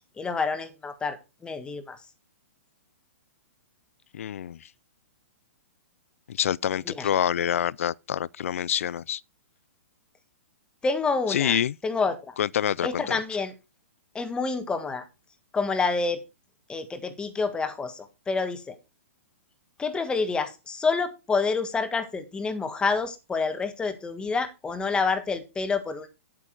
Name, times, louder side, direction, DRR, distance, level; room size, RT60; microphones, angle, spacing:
voice 1, 0.2-2.0 6.9-7.1 10.8-11.6 11.8-12.4 12.8-13.5 14.1-15.0 15.5-16.2 16.7-18.8 19.8-26.1, left 4 dB, 10° left, 1.6 m, -28 dB
voice 2, 4.1-4.6 6.3-9.2 11.3-11.7 12.4-13.2, left 10 dB, 70° left, 0.4 m, -26 dB
9.8 x 8.6 x 4.6 m
hypercardioid pair, 135°, 8 cm